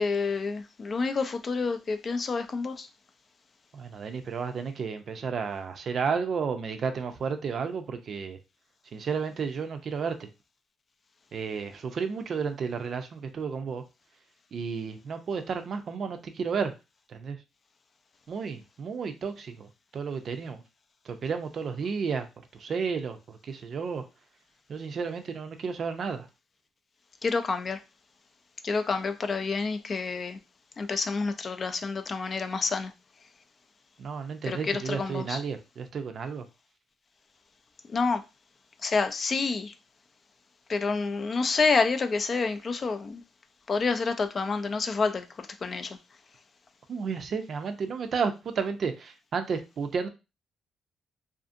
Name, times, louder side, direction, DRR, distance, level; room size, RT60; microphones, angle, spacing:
voice 1, 0.0-2.9 27.2-27.8 28.6-30.4 30.8-32.9 34.4-35.4 37.9-38.2 38.8-39.7 40.7-43.2 43.7-46.0, left 4 dB, 40° left, 0.4 m, -28 dB
voice 2, 3.7-8.4 8.9-10.3 11.3-13.8 14.5-16.7 17.1-17.4 18.3-20.6 21.0-22.3 22.5-24.0 24.7-26.3 34.0-36.4 46.9-50.1, right 5 dB, 55° right, 0.4 m, -32 dB
2.5 x 2.5 x 2.5 m
cardioid pair, 90°, 0 cm